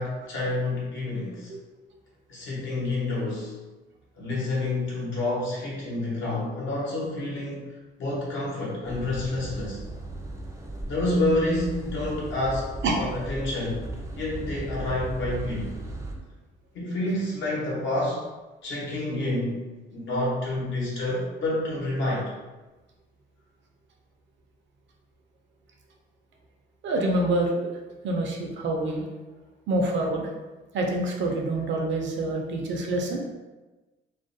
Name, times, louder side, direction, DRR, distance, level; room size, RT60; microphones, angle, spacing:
voice 1, 0.0-1.5 2.3-3.6 4.2-7.6 8.0-9.8 10.9-12.7 13.0-13.8 14.1-15.7 16.7-18.2 18.6-19.6 19.9-22.2, left 2 dB, 75° left, -5 dB, 0.9 m, -28 dB
sound 1, 8.8-16.1, right 2 dB, 15° right, 0.4 m, -36 dB
voice 2, 26.8-27.8 28.0-29.0 29.7-30.3 30.7-33.2, right 2 dB, 65° right, 1 dB, 0.5 m, -26 dB
2.4 x 2.1 x 2.6 m, 1.2 s
cardioid pair, 90°, 20 cm